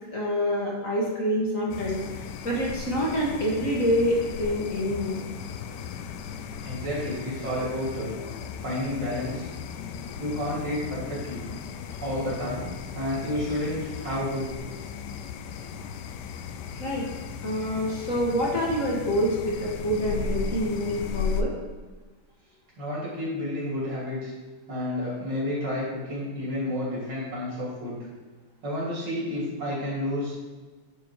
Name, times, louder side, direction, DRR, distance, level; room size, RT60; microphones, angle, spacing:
voice 1, 0.1-5.2 16.7-17.1 17.4-21.5, equal, 40° left, -5 dB, 1.7 m, -27 dB
sound 1, 1.7-21.4, left 6 dB, 75° left, 1.0 m, -36 dB
voice 2, 6.6-8.2 8.6-9.5 10.2-11.5 12.0-12.7 12.9-14.5 22.8-24.3 24.7-28.0 28.6-30.3, left 1 dB, 55° right, -7 dB, 3.8 m, -30 dB
11.0 x 4.7 x 4.7 m, 1.3 s
omnidirectional pair, 2.3 m